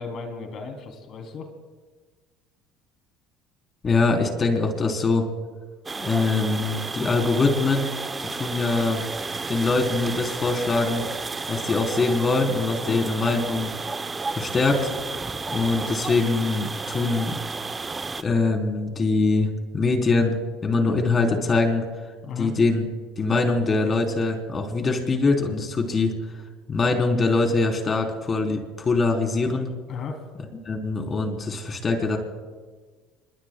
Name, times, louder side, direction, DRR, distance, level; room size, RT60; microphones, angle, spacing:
voice 1, 0.0-1.5 12.8-13.0 22.2-22.5 29.9-30.2, left 5 dB, 50° left, 4 dB, 2.9 m, -35 dB
voice 2, 3.8-5.3 6.0-7.9 8.2-9.0 9.5-11.0 11.5-13.7 14.3-14.9 15.5-17.3 18.2-21.8 22.4-22.8 23.2-26.1 26.7-29.7 30.6-32.2, left 3 dB, 30° left, 3 dB, 3.5 m, -23 dB
sound 1, 5.9-18.2, right 4 dB, 20° right, 0.7 m, -32 dB
27.0 x 22.0 x 2.3 m, 1.4 s
supercardioid pair, 90°, 0 cm